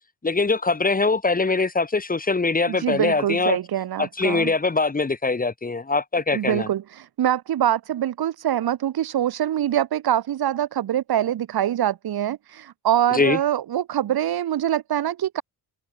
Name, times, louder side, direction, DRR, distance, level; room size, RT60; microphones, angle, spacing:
voice 1, 0.2-3.6 4.0-6.7 13.1-13.4, left 3 dB, 20° left, 5.3 m, -22 dB
voice 2, 2.7-4.5 6.3-15.4, right 11 dB, 75° right, 6.1 m, -24 dB
cardioid pair, 125°, 37 cm